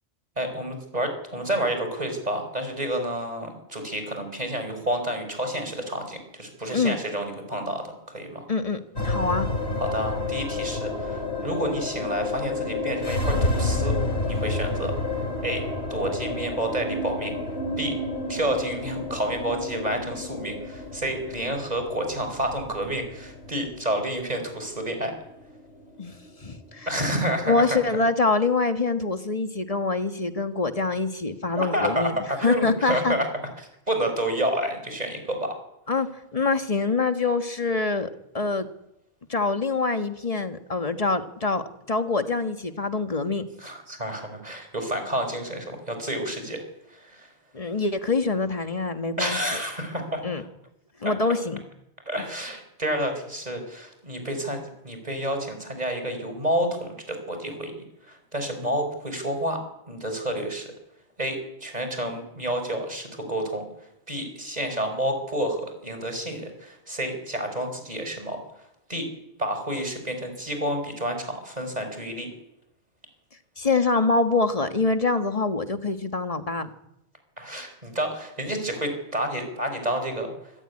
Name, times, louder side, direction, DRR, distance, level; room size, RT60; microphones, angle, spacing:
voice 1, 0.4-8.5 9.8-14.0 14.3-14.9 15.4-17.3 17.8-18.0 18.3-25.1 26.9-27.9 31.5-33.3 33.6-35.6 43.6-47.3 49.2-50.5 51.0-51.1 52.1-59.6 59.9-60.7 61.2-63.7 64.1-68.4 68.9-69.1 69.4-72.3 77.4-80.5, right 1 dB, 40° right, 6 dB, 5.5 m, -29 dB
voice 2, 8.5-9.5 26.0-26.1 26.4-26.9 27.5-32.1 32.4-33.1 35.9-38.1 38.3-38.7 39.3-43.4 47.5-49.4 50.2-50.4 51.0-51.6 73.6-76.7, left 3 dB, 35° left, 8 dB, 1.6 m, -25 dB
sound 1, 9.0-27.5, left 2 dB, 75° left, 3.5 m, -30 dB
25.5 x 14.5 x 9.9 m, 0.86 s
omnidirectional pair, 1.1 m